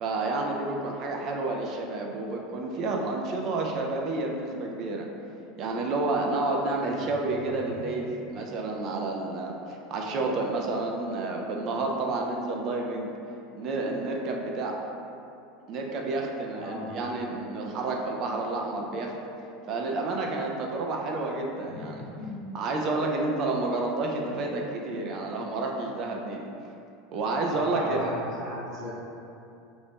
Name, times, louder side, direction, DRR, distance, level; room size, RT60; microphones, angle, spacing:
voice 1, 0.0-5.1 5.6-13.1 13.5-14.8 15.7-19.1 19.7-22.1 22.5-26.5 27.1-28.0, right 2 dB, 50° right, 0 dB, 0.3 m, -30 dB
voice 2, 6.8-8.0 16.6-17.0 21.6-22.4 24.8-25.1 27.5-28.9, left 1 dB, 45° left, -10 dB, 1.0 m, -38 dB
2.5 x 2.1 x 3.3 m, 2.7 s
supercardioid pair, 115°, 0 cm